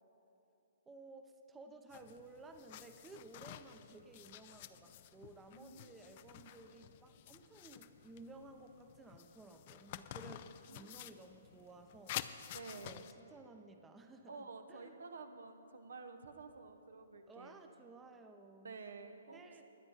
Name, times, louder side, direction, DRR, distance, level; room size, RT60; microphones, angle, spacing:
voice 1, 0.9-12.2 12.8-13.0 13.3-15.0 17.3-18.8 19.3-19.6, right 3 dB, 10° right, 6 dB, 0.7 m, -56 dB
sound 1, 1.9-13.1, left 12 dB, 45° left, 0.5 m, -50 dB
voice 2, 5.5-6.6 10.2-11.2 12.5-13.0 14.3-17.6 18.6-19.5, right 4 dB, 75° right, 7 dB, 1.0 m, -52 dB
22.5 x 8.9 x 4.1 m, 2.9 s
hypercardioid pair, 130°, 0 cm